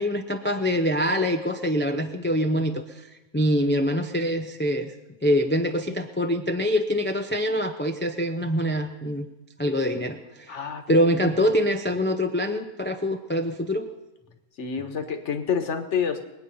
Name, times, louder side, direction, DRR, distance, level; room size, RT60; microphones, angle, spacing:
voice 1, 0.0-3.1 3.3-4.9 5.2-9.3 9.6-10.6 10.9-13.9, equal, 15° left, 6 dB, 0.4 m, -24 dB
voice 2, 10.5-10.8 14.6-16.2, left 7 dB, 60° left, 6 dB, 1.6 m, -28 dB
22.5 x 9.2 x 5.6 m, 1.0 s
omnidirectional pair, 1.4 m